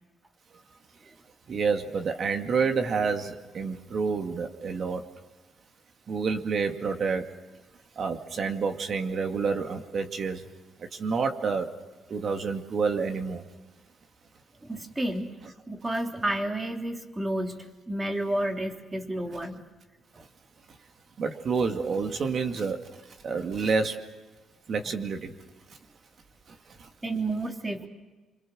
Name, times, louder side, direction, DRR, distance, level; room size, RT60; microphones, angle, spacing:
voice 1, 1.5-5.0 6.1-7.2 8.0-10.4 11.0-11.7 12.1-13.4 21.2-22.8 23.2-24.0 24.7-25.3, right 5 dB, 55° right, 5 dB, 2.3 m, -28 dB
voice 2, 14.6-15.3 15.7-19.6 27.0-27.9, right 1 dB, 15° right, 3 dB, 3.2 m, -31 dB
26.5 x 25.5 x 6.5 m, 1.3 s
cardioid pair, 90°, 0 cm